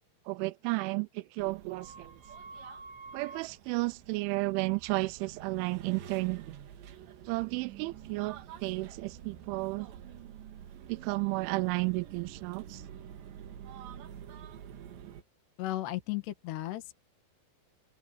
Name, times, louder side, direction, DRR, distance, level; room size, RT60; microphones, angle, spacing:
voice 1, 0.3-2.2 3.1-6.6 7.3-9.9 10.9-12.8, right 24 dB, 85° right, 2.9 m, -33 dB
sound 1, 1.4-15.2, right 8 dB, 65° right, 3.8 m, -48 dB
voice 2, 15.6-17.0, left 15 dB, 65° left, 3.8 m, -35 dB
open air
omnidirectional pair, 5.7 m